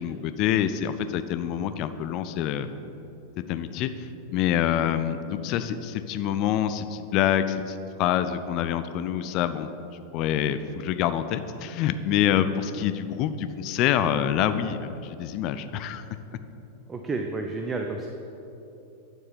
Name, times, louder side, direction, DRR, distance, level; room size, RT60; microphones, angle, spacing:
voice 1, 0.0-2.8 3.5-9.7 10.1-16.0, left 10 dB, 40° left, 11 dB, 0.4 m, -26 dB
voice 2, 16.9-18.1, right 3 dB, 15° right, 4 dB, 0.5 m, -30 dB
9.2 x 4.6 x 5.7 m, 2.9 s
figure-of-eight pair, 90°, 0 cm